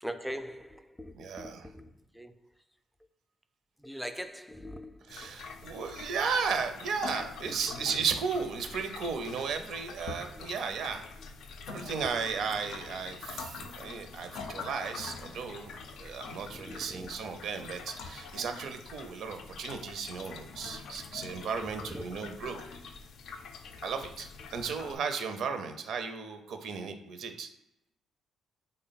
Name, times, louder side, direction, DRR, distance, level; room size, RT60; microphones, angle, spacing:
voice 1, 0.0-2.5 3.8-5.3 7.4-7.9 10.4-10.5 11.8-12.1 16.5-17.2 20.7-21.0 21.4-22.2, equal, ahead, 0.3 m, -43 dB
voice 2, 1.2-1.7 5.1-11.0 11.7-15.7 16.0-22.6 23.8-27.5, right 5 dB, 70° right, 0.5 m, -35 dB
sound 1, 5.1-25.0, left 5 dB, 75° left, 0.4 m, -45 dB
3.4 x 2.1 x 3.9 m
cardioid pair, 90°, 0 cm